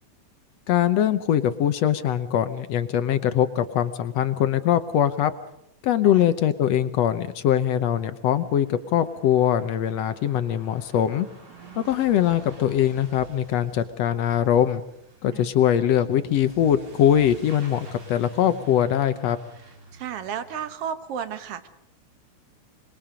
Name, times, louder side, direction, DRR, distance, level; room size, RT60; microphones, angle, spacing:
voice 1, 0.7-5.3 5.8-11.3 11.8-14.8 15.2-19.4, left 10 dB, 70° left, 11 dB, 1.9 m, -22 dB
Truck / Accelerating revving vroom, 7.8-20.7, equal, 45° right, 4.3 m, -47 dB
voice 2, 11.5-12.0 15.3-15.5 19.9-21.7, right 8 dB, 60° right, 10 dB, 1.9 m, -34 dB
25.5 x 22.5 x 5.1 m, 0.78 s
omnidirectional pair, 3.4 m